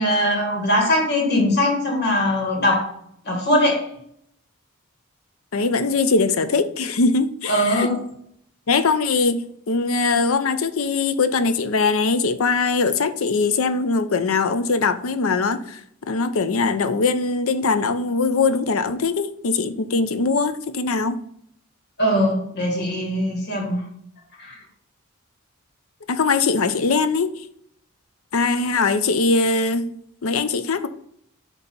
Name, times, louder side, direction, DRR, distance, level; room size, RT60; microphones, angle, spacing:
voice 1, 0.0-2.9 3.3-3.9 7.5-8.0 22.0-23.8 24.4-24.6, left 1 dB, 50° left, 1.7 m, -21 dB
voice 2, 5.5-7.9 8.7-15.8 16.1-21.2 26.1-27.4 28.3-29.9 30.2-30.9, left 4 dB, 75° left, 0.6 m, -21 dB
8.1 x 2.9 x 5.3 m
head